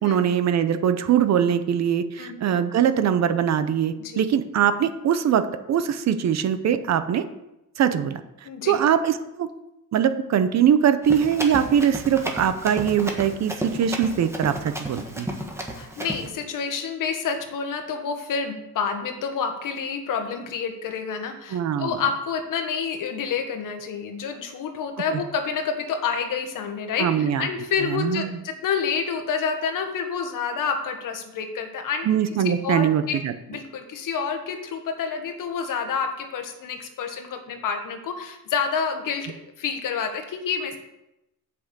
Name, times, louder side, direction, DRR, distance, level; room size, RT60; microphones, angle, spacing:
voice 1, 0.0-7.2 7.8-8.2 8.7-9.5 9.9-15.3 21.5-22.0 25.1-25.2 27.0-27.5 27.9-28.4 32.1-33.3, right 8 dB, 50° right, 11 dB, 0.7 m, -22 dB
voice 2, 2.2-2.5 4.0-4.3 8.4-8.7 15.7-32.1 32.4-33.2 33.5-40.8, left 6 dB, 60° left, 5 dB, 1.5 m, -28 dB
Run, 11.0-16.3, right 1 dB, 5° right, 1.3 m, -33 dB
8.0 x 6.2 x 8.0 m, 0.91 s
cardioid pair, 160°, 36 cm